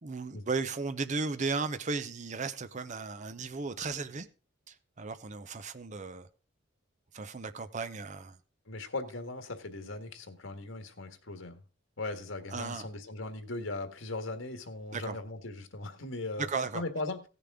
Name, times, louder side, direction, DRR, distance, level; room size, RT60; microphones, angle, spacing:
voice 1, 0.0-4.3 4.7-6.3 7.1-8.4 12.5-12.8 14.9-15.2 16.4-16.8, right 4 dB, 40° right, 0.7 m, -35 dB
voice 2, 8.7-11.6 12.0-16.5 16.7-17.2, left 2 dB, 90° left, 1.7 m, -38 dB
16.0 x 6.9 x 3.6 m
head